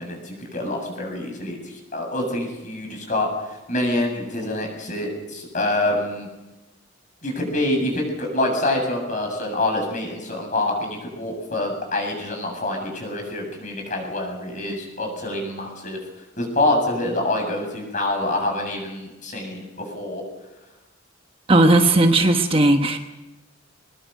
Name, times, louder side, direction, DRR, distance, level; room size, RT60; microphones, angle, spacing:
voice 1, 0.0-3.3 3.7-6.3 7.2-16.0 16.4-20.2, left 1 dB, 40° left, 2 dB, 7.5 m, -26 dB
voice 2, 21.5-23.0, right 2 dB, 30° right, 5 dB, 1.2 m, -16 dB
22.5 x 21.0 x 6.6 m, 1.1 s
head